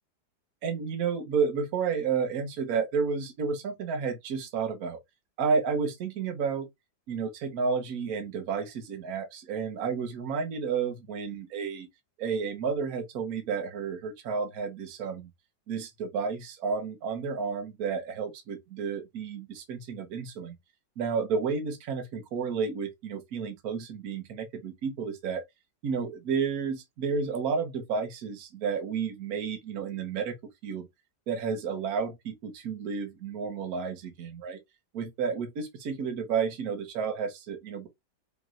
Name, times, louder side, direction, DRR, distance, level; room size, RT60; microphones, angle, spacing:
voice 1, 0.6-5.0 5.4-6.7 7.1-11.9 12.2-15.3 15.7-20.5 21.0-25.4 25.8-30.3 30.6-30.9 31.3-34.6 34.9-37.9, right 5 dB, 65° right, 1.3 m, -31 dB
5.2 x 2.9 x 2.4 m
omnidirectional pair, 1.8 m